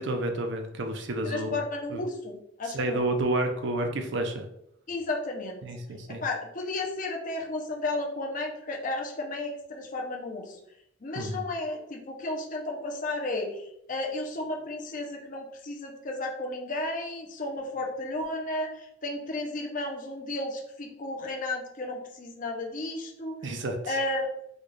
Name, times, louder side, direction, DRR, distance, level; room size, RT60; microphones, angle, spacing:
voice 1, 0.0-1.6 1.9-2.0 2.6-4.5 5.6-6.2 11.2-11.5 23.4-24.0, right 2 dB, 60° right, 5 dB, 0.5 m, -30 dB
voice 2, 1.2-3.0 4.9-5.6 6.1-10.6 11.0-13.6 13.9-23.4 23.9-24.3, left 2 dB, 40° left, 0 dB, 0.6 m, -33 dB
4.3 x 2.3 x 3.1 m, 0.78 s
head